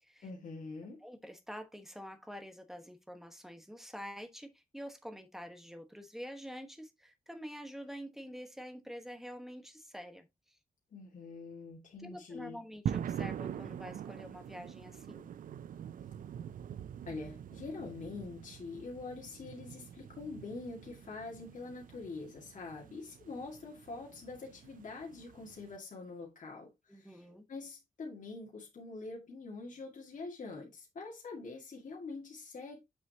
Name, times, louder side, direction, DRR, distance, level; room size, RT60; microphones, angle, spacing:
voice 1, 0.2-1.0 10.9-12.6 17.1-32.8, left 3 dB, 65° left, 2.0 m, -45 dB
voice 2, 1.0-10.6 12.0-15.3 26.9-27.4, equal, 5° right, 1.3 m, -47 dB
sound 1, 12.9-25.8, right 9 dB, 75° right, 0.4 m, -44 dB
7.7 x 6.1 x 2.8 m
wide cardioid pair, 140°, 14 cm